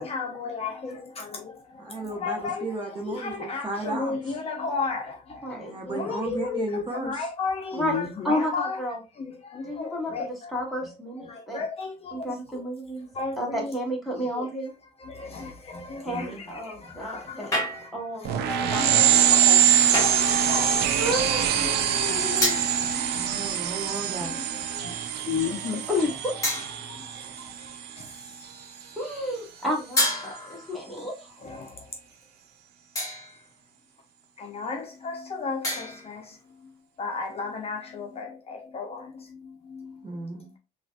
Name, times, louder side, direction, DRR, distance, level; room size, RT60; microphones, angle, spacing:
voice 1, 0.0-2.7 3.1-8.8 9.1-10.9 11.2-12.7 13.1-13.8 14.2-14.5 15.0-17.9 18.2-23.5 23.8-25.9 26.8-29.0 31.4-32.0 34.4-36.7 37.0-40.1, left 4 dB, 35° left, 0.6 m, -35 dB
voice 2, 1.8-4.2 5.5-7.3 16.0-16.4 23.2-24.4 40.0-40.5, right 2 dB, 30° right, 1.0 m, -34 dB
voice 3, 5.4-5.7 7.7-7.9 8.2-9.0 9.6-11.6 12.1-13.1 13.4-14.7 16.0-17.6 17.9-19.6 21.0-22.6 25.9-26.3 29.0-31.3, left 1 dB, ahead, 1.4 m, -31 dB
sound 1, 17.5-18.1 19.9-20.3 22.4-22.8 23.9-24.4 25.0-25.2 26.4-27.0 30.0-30.8 33.0-33.4 35.6-36.2, left 1 dB, 20° left, 1.6 m, -29 dB
sound 2, 18.3-28.4, right 9 dB, 75° right, 0.4 m, -24 dB
3.8 x 2.4 x 2.2 m
cardioid pair, 110°, 17 cm